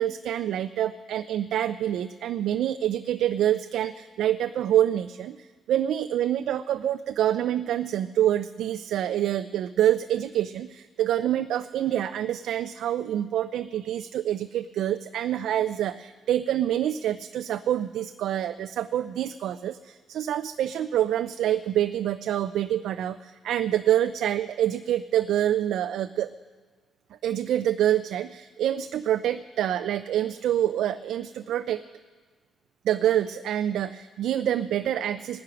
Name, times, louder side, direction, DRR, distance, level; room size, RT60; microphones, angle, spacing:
voice 1, 0.0-26.3 27.2-31.8 32.8-35.4, right 11 dB, 80° right, 11 dB, 0.4 m, -26 dB
19.0 x 10.0 x 5.8 m, 1.4 s
cardioid pair, 90°, 0 cm